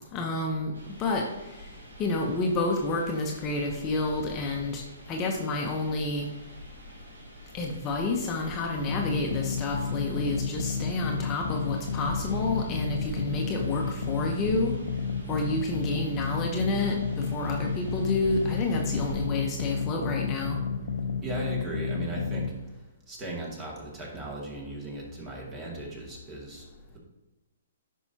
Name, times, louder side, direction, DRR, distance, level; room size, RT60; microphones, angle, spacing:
voice 1, 0.1-0.7 1.0-1.2 2.0-4.8 5.1-6.3 7.5-14.8 15.3-20.6, left 2 dB, 25° left, 1 dB, 1.0 m, -29 dB
sound 1, 0.7-19.3, equal, 85° right, 2.7 m, -45 dB
sound 2, 8.9-22.5, left 5 dB, 75° left, 0.8 m, -31 dB
voice 2, 21.2-22.5 23.1-26.7, right 2 dB, 25° right, -2 dB, 2.2 m, -37 dB
9.7 x 5.5 x 2.9 m, 1.1 s
hypercardioid pair, 140°, 0 cm